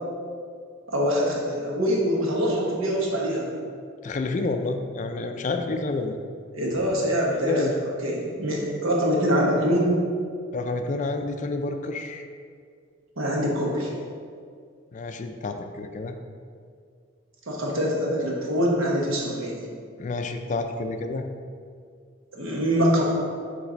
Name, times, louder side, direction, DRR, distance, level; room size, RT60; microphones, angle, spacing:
voice 1, 0.9-3.5 6.5-7.7 8.0-9.9 13.2-13.9 17.5-19.6 22.3-23.0, equal, 85° right, -3 dB, 1.2 m, -24 dB
voice 2, 4.0-6.2 7.5-7.7 10.5-12.3 14.9-16.2 20.0-21.2, left 3 dB, 35° left, 6 dB, 0.3 m, -29 dB
7.3 x 3.3 x 3.9 m, 2.2 s
head